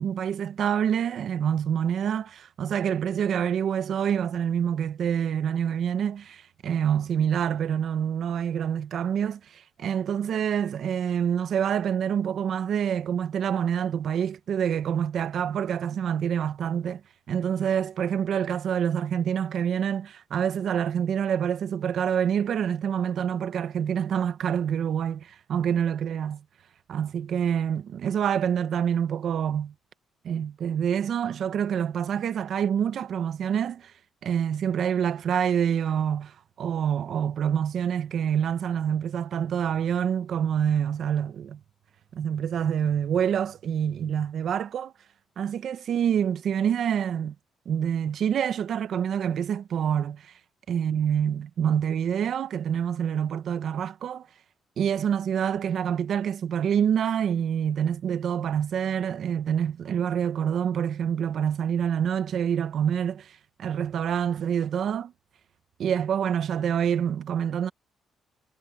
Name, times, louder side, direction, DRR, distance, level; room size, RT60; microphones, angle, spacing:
voice 1, 0.0-17.0 17.3-26.4 26.9-29.7 30.2-33.9 34.2-41.6 42.1-44.9 45.4-47.3 47.6-50.3 50.7-54.3 54.8-63.3 63.6-65.1 65.8-67.7, right 8 dB, 65° right, 1.2 m, -26 dB
cardioid pair, 90°, 0 cm